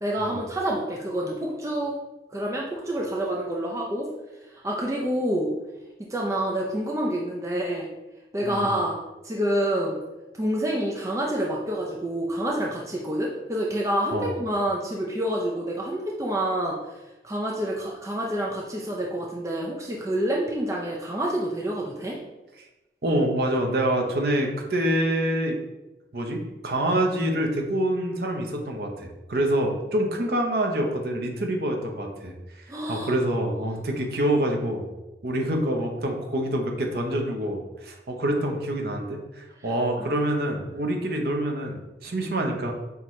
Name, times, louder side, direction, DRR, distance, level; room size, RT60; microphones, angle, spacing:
voice 1, 0.0-1.9 2.3-4.1 4.6-5.5 6.1-7.9 8.3-9.0 9.2-10.0 10.4-16.8 17.2-22.2 32.7-33.1 40.0-40.1, right 1 dB, 15° right, -2 dB, 0.4 m, -27 dB
voice 2, 8.4-8.7 14.1-14.3 22.6-22.7 23.0-25.6 26.1-34.8 35.2-42.7, right 1 dB, 60° right, 2 dB, 0.7 m, -26 dB
5.7 x 2.9 x 3.1 m, 1.0 s
head